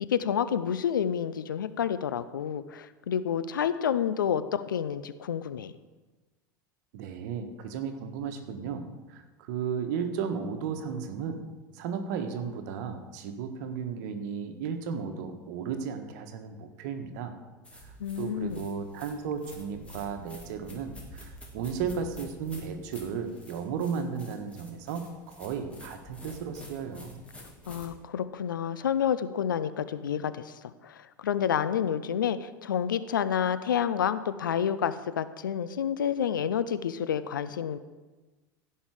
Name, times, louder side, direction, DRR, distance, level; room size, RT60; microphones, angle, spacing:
voice 1, 0.1-5.7 18.0-18.7 27.7-30.5 30.8-37.8, left 8 dB, 80° left, 14 dB, 0.5 m, -29 dB
voice 2, 6.9-11.5 11.7-17.3 17.7-27.2, right 6 dB, 60° right, 7 dB, 1.4 m, -34 dB
sound 1, 17.6-27.9, equal, 10° left, 2.9 m, -49 dB
16.0 x 5.6 x 4.9 m, 1.2 s
hypercardioid pair, 85°, 11 cm